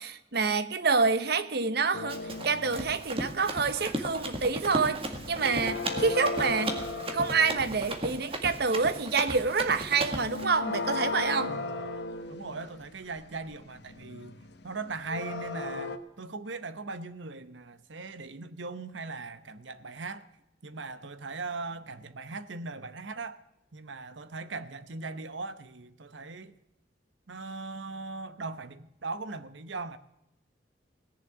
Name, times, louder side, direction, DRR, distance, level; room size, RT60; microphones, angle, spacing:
voice 1, 0.0-6.8 7.1-11.5, right 4 dB, 60° right, 1.0 m, -27 dB
sound 1, 1.9-3.1 3.3-3.7 3.9-4.7 4.9-8.0 9.7-9.8 10.0-16.0, left 3 dB, 60° left, 1.1 m, -36 dB
Run, 2.1-10.4, right 1 dB, 30° right, 1.8 m, -36 dB
voice 2, 11.5-11.8 12.3-14.4 14.6-20.3 20.6-23.4 23.7-26.5 27.3-30.0, right 3 dB, 85° right, 1.0 m, -39 dB
18.0 x 7.3 x 9.7 m
head